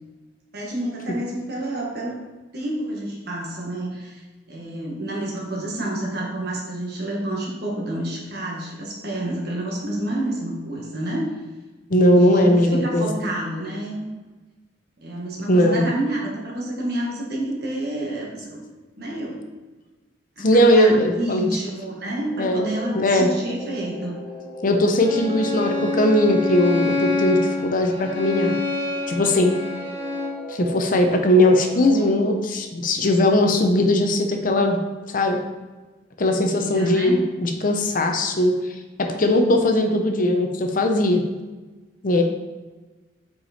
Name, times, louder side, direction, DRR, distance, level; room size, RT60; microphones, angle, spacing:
voice 1, 0.5-2.2 2.5-11.3 12.1-14.0 15.0-18.6 19.0-19.4 20.4-24.2 36.5-37.2 42.1-42.2, right 1 dB, 60° right, -3 dB, 1.5 m, -29 dB
voice 2, 11.9-13.1 15.5-15.8 20.4-21.6 22.4-22.6 22.9-23.3 24.6-28.5 29.1-29.5 30.5-34.8 35.1-35.4 36.2-38.5 39.0-41.2 42.0-42.2, left 1 dB, 50° left, 4 dB, 0.7 m, -19 dB
sound 1, 21.7-32.4, right 2 dB, 10° right, 1.0 m, -39 dB
Bowed string instrument, 25.0-30.5, left 3 dB, 15° left, 1.2 m, -27 dB
5.7 x 5.0 x 4.2 m, 1.2 s
head